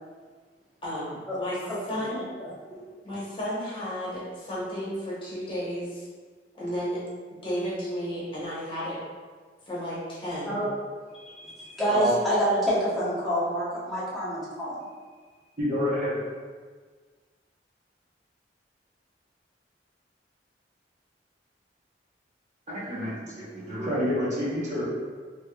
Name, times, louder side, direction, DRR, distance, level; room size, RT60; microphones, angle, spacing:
voice 1, 0.8-1.6 1.9-2.2 3.0-6.1 6.6-7.0 7.4-9.0 9.7-10.6, equal, 30° left, -9 dB, 1.0 m, -33 dB
voice 2, 2.1-2.5 10.5-10.7 11.1-14.8, equal, ahead, -11 dB, 1.0 m, -27 dB
voice 3, 15.6-16.2 22.7-24.8, equal, 45° right, -9 dB, 1.0 m, -28 dB
3.3 x 3.0 x 2.3 m, 1.5 s
head